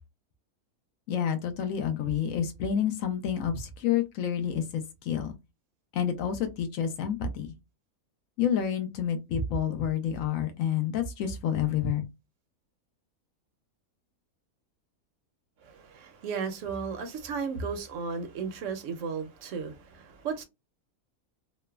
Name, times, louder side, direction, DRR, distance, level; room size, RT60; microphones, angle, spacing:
voice 1, 1.1-5.4 5.9-7.5 8.4-12.1, left 8 dB, 70° left, 0.9 m, -29 dB
voice 2, 15.6-20.4, right 5 dB, 65° right, 0.8 m, -35 dB
3.1 x 2.0 x 2.2 m
omnidirectional pair, 1.6 m